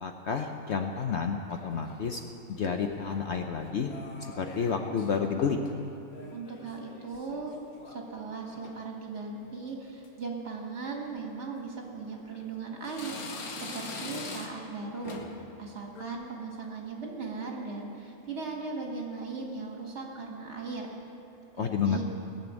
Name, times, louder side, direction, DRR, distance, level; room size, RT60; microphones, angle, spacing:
voice 1, 0.0-2.2 2.5-3.9 4.2-5.6 21.6-22.0, left 6 dB, 55° left, 4 dB, 0.9 m, -30 dB
sound 1, 1.5-2.2 2.9-3.4 3.9-5.1 5.4-5.7 6.0-8.0 8.3-8.8 9.4-9.7 10.0-10.1 11.1-11.2 11.8-12.5 12.8-14.7 15.0-15.4 15.8-16.1, left 3 dB, 75° left, 1.7 m, -44 dB
voice 2, 6.3-7.6 7.9-13.1 13.5-15.2 15.6-20.9 21.5-22.0, right 4 dB, 50° right, 0 dB, 2.1 m, -38 dB
18.0 x 7.0 x 8.2 m, 2.7 s
omnidirectional pair, 1.6 m